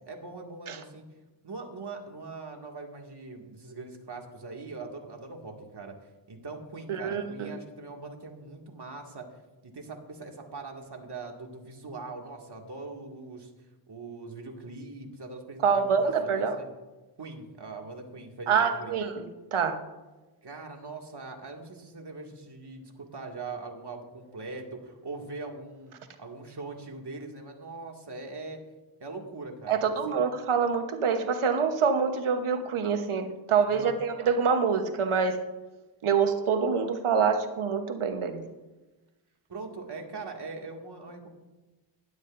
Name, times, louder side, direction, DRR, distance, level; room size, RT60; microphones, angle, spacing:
voice 1, 0.1-1.0 1.4-5.9 6.3-9.3 9.6-13.5 13.9-16.7 17.2-18.9 20.4-28.6 29.0-30.2 33.7-34.0 39.5-41.3, right 3 dB, 55° right, 1 dB, 2.2 m, -41 dB
voice 2, 6.9-7.5 15.6-16.5 18.5-19.2 19.5-19.8 29.7-35.4 36.0-38.4, right 6 dB, 80° right, 7 dB, 1.1 m, -26 dB
15.5 x 11.5 x 2.6 m, 1.1 s
cardioid pair, 40°, 49 cm